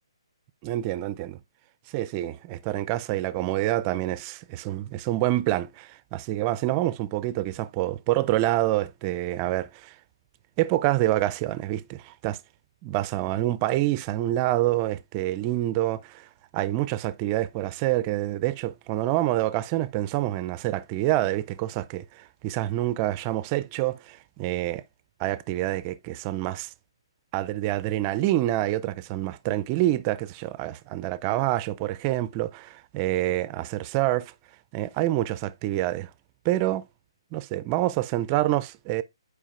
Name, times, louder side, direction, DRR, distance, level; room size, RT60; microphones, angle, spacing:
voice 1, 0.6-1.4 1.9-9.9 10.6-12.4 12.8-16.3 16.5-24.8 25.2-26.7 27.3-34.3 34.7-36.1 36.4-36.8 37.3-39.0, right 15 dB, 25° right, 0.4 m, -27 dB
9.9 x 4.8 x 2.4 m
hypercardioid pair, 145°, 3 cm